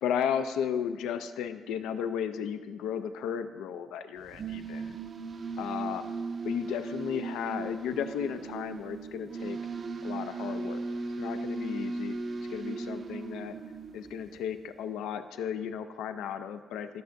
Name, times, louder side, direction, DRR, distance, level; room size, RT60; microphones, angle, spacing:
voice 1, 0.0-5.0 5.6-6.0 6.4-9.6 10.0-10.8 11.2-12.2 12.5-13.6 13.9-17.0, left 8 dB, 90° left, 10 dB, 0.4 m, -34 dB
sound 1, 4.2-14.6, right 3 dB, 45° right, 0.4 m, -37 dB
12.5 x 6.6 x 2.6 m, 1.4 s
cardioid pair, 90°, 0 cm